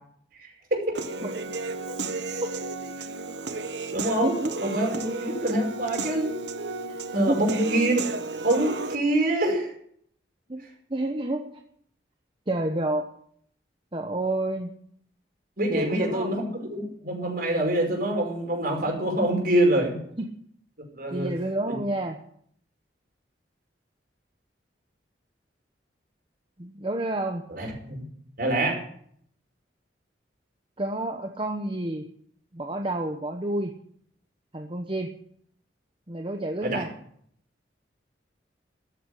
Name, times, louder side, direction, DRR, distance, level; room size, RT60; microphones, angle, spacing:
voice 1, 0.4-1.0 3.9-4.4 4.6-4.9 5.1-6.4 7.1-8.1 8.4-9.7 15.6-20.0 20.9-21.3 21.7-21.8 27.5-28.0 28.4-28.8 36.6-36.8, right 1 dB, 55° right, 1 dB, 5.4 m, -25 dB
Human voice / Piano, 0.9-9.0, right 3 dB, 70° right, 1.2 m, -33 dB
voice 2, 4.2-4.6 5.0-5.2 7.3-7.4 10.5-11.5 12.5-13.1 13.9-14.8 15.7-16.4 20.2-20.3 21.1-22.2 26.6-27.4 30.8-32.1 32.5-33.7 34.5-35.1 36.1-36.9, right 1 dB, 30° right, 4 dB, 1.0 m, -29 dB
14.0 x 7.9 x 10.0 m, 0.67 s
head